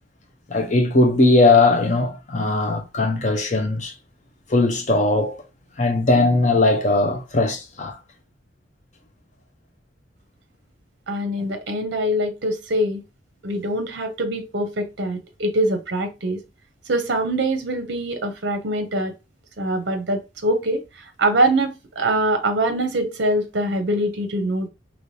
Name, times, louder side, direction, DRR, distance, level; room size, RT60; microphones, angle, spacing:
voice 1, 0.5-3.9 4.5-5.4 5.8-8.0, left 2 dB, 40° left, 0.6 m, -19 dB
voice 2, 11.1-13.0 13.4-16.4 16.9-19.1 19.6-20.8 21.2-24.7, right 1 dB, 60° right, 0.6 m, -23 dB
3.2 x 3.0 x 2.6 m
head